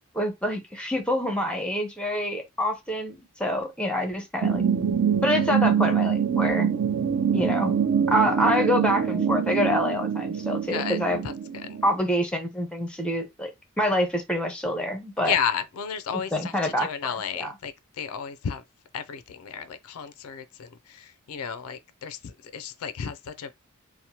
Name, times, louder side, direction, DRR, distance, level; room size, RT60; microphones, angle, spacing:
voice 1, 0.1-4.6 5.2-6.7 7.3-7.8 8.1-11.2 11.8-13.5 13.8-15.3 16.1-16.9 17.3-17.5, equal, 5° left, 0.5 m, -26 dB
sound 1, 4.4-11.9, right 7 dB, 55° right, 0.5 m, -25 dB
voice 2, 11.2-11.8 15.2-18.6 18.9-23.5, left 7 dB, 75° left, 0.4 m, -32 dB
2.9 x 2.0 x 2.7 m
head